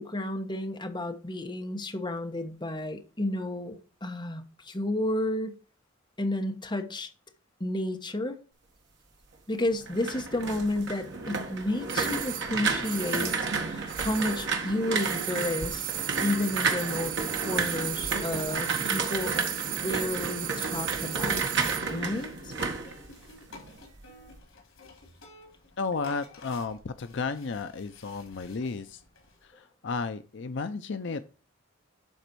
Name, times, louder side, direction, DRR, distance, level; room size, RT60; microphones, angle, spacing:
voice 1, 0.0-5.6 6.2-7.1 7.6-8.4 9.5-13.3 13.6-15.9 16.2-19.3 19.8-21.4 21.9-22.5, left 1 dB, 20° left, 1.2 m, -31 dB
sound 1, 9.7-23.7 24.0-24.4, right 4 dB, 60° right, 1.7 m, -32 dB
sound 2, 11.9-14.6 14.9-21.9 22.2-22.3, right 13 dB, 40° right, 0.4 m, -36 dB
sound 3, 19.3-29.4, left 2 dB, 75° left, 3.9 m, -51 dB
voice 2, 25.8-29.0 29.4-31.3, left 4 dB, 60° left, 0.5 m, -33 dB
12.0 x 4.2 x 4.6 m
head